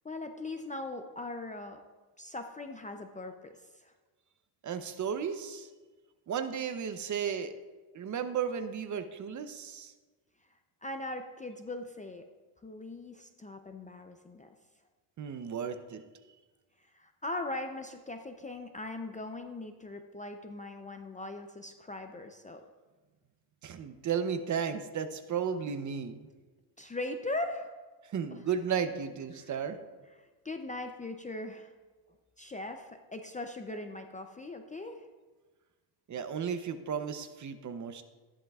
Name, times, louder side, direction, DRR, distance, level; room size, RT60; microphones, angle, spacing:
voice 1, 0.0-1.8 2.2-3.9 10.8-12.3 12.6-14.5 16.9-22.6 26.8-27.7 28.3-28.4 29.3-29.5 30.2-31.7 32.4-35.1, left 2 dB, 15° left, 5 dB, 0.5 m, -40 dB
voice 2, 4.6-5.7 6.3-7.5 7.9-9.9 15.2-16.0 23.6-26.3 28.1-29.8 36.1-38.0, right 7 dB, 40° right, 9 dB, 0.7 m, -34 dB
13.5 x 11.0 x 2.4 m, 1.3 s
cardioid pair, 120°, 48 cm